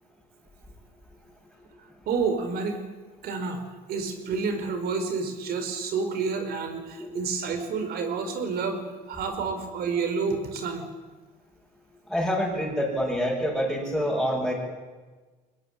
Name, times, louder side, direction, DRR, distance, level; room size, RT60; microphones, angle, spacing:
voice 1, 2.1-2.8 3.2-3.6 3.9-8.8 9.1-10.8, right 5 dB, 70° right, 7 dB, 4.7 m, -29 dB
voice 2, 12.1-14.5, equal, ahead, -5 dB, 6.6 m, -26 dB
22.5 x 20.5 x 9.1 m, 1.3 s
cardioid pair, 110°, 17 cm